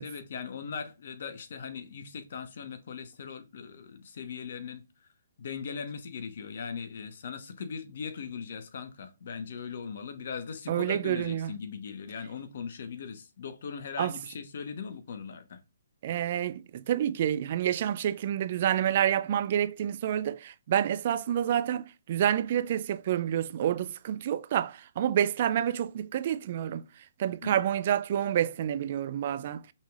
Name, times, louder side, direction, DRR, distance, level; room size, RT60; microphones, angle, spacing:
voice 1, 0.0-4.8 5.4-15.6 27.4-27.5, left 6 dB, 60° left, 0.9 m, -39 dB
voice 2, 10.7-11.5 14.0-14.1 16.0-26.8 27.2-29.6, right 10 dB, 45° right, 0.3 m, -28 dB
5.5 x 3.2 x 2.3 m
hypercardioid pair, 145°, 0 cm